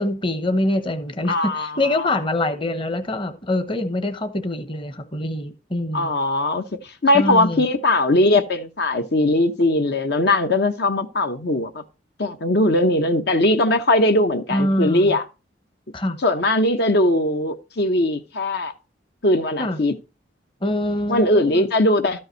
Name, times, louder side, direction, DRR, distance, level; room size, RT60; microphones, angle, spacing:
voice 1, 0.0-6.1 7.1-7.6 14.5-15.1 15.9-16.2 19.6-19.8 20.6-21.7, left 1 dB, 30° left, 1.0 m, -24 dB
voice 2, 1.3-2.1 5.9-11.8 12.2-15.2 16.2-18.7 19.2-19.9 21.1-22.2, left 1 dB, 65° left, 0.9 m, -20 dB
13.0 x 5.5 x 4.5 m
head